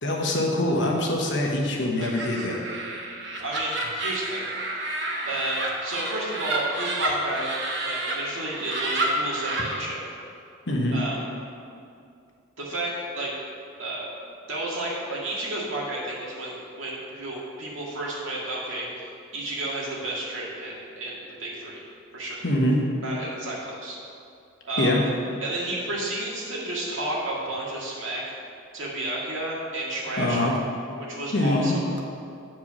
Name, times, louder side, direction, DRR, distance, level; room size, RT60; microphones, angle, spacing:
voice 1, 0.0-2.6 10.7-11.0 22.4-22.8 24.8-25.0 30.2-30.6 31.3-31.7, left 1 dB, 60° left, -1 dB, 1.2 m, -24 dB
Laughter, 2.0-8.1 8.5-9.7, right 2 dB, 55° right, 1.1 m, -30 dB
voice 2, 3.4-4.5 5.3-10.1 10.9-11.3 12.6-13.3 13.8-14.1 14.5-18.9 19.3-21.8 22.1-22.4 23.0-24.0 24.6-25.1 25.4-28.2 28.7-30.5 31.0-31.8, right 1 dB, 75° right, -4 dB, 1.9 m, -31 dB
8.6 x 4.7 x 6.0 m, 2.4 s
head